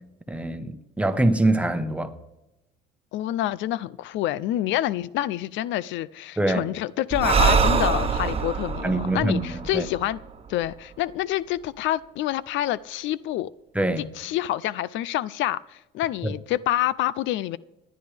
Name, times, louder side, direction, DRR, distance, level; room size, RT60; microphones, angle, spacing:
voice 1, 0.3-2.1 6.4-6.6 8.8-9.9 13.7-14.1 16.2-16.3, right 2 dB, 5° right, 1.1 m, -24 dB
voice 2, 3.1-10.2 10.5-13.5 14.2-17.6, left 14 dB, 70° left, 0.4 m, -27 dB
Breathing, 7.1-10.7, right 5 dB, 30° right, 1.1 m, -24 dB
18.5 x 10.5 x 3.4 m
cardioid pair, 95°, 20 cm